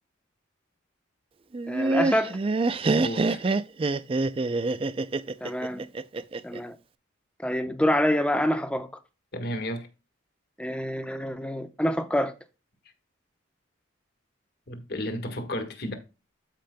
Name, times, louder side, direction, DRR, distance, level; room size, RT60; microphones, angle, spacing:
Laughter, 1.5-6.6, right 3 dB, 30° right, 0.4 m, -26 dB
voice 1, 1.7-2.3 5.4-5.8 6.4-6.8 7.4-8.9 10.6-12.3, equal, 5° left, 0.8 m, -26 dB
voice 2, 2.8-3.4 9.3-9.9 14.7-15.9, equal, 55° left, 1.5 m, -33 dB
13.5 x 5.1 x 2.2 m
head